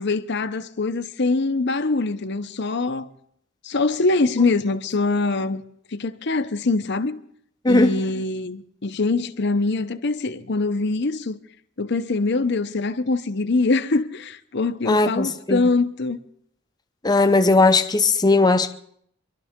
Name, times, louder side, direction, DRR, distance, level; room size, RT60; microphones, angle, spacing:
voice 1, 0.0-3.1 3.6-5.6 5.9-7.2 7.7-11.4 11.8-16.2, left 3 dB, 60° left, 0.8 m, -23 dB
voice 2, 7.6-8.0 14.8-15.7 17.0-18.7, left 3 dB, 20° left, 0.7 m, -18 dB
26.0 x 12.0 x 3.6 m
head